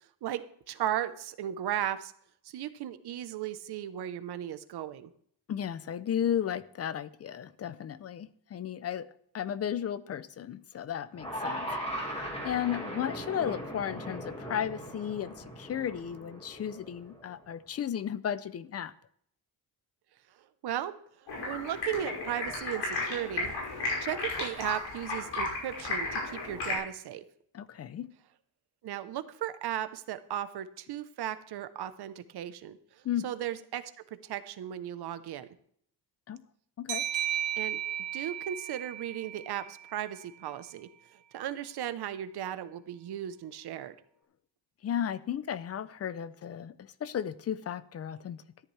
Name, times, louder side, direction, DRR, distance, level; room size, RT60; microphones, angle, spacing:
voice 1, 0.2-2.1 2.4-5.1 20.6-20.9 21.2-27.2 28.8-33.8 34.2-35.5 37.6-37.8 38.1-40.9 41.3-43.9, right 11 dB, 55° right, 0.8 m, -36 dB
voice 2, 5.5-9.1 9.3-18.9 27.5-28.1 33.0-33.3 36.3-36.4 36.8-37.1 44.8-48.4, left 9 dB, 35° left, 0.4 m, -34 dB
sound 1, 11.1-17.4, equal, 15° left, 1.9 m, -39 dB
Stream, 21.3-26.8, left 3 dB, 65° left, 5.8 m, -34 dB
sound 2, 36.9-40.2, right 11 dB, 75° right, 2.8 m, -35 dB
13.5 x 10.5 x 3.2 m
cardioid pair, 175°, 45 cm